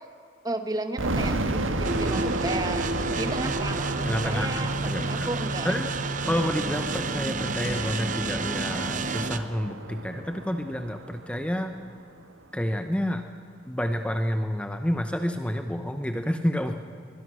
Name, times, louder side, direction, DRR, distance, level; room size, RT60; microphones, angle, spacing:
voice 1, 0.4-5.7, right 2 dB, 20° right, 8 dB, 1.1 m, -34 dB
sound 1, 1.0-11.9, right 2 dB, 80° right, 1.7 m, -32 dB
sound 2, 1.8-9.4, right 3 dB, 40° right, 0.9 m, -30 dB
voice 2, 4.0-5.3 5.6-5.9 6.3-11.7 12.5-13.3 13.7-16.7, equal, 5° left, 6 dB, 0.9 m, -29 dB
sound 3, 7.6-12.0, left 2 dB, 30° left, 3.6 m, -47 dB
23.0 x 21.5 x 6.3 m, 2.3 s
head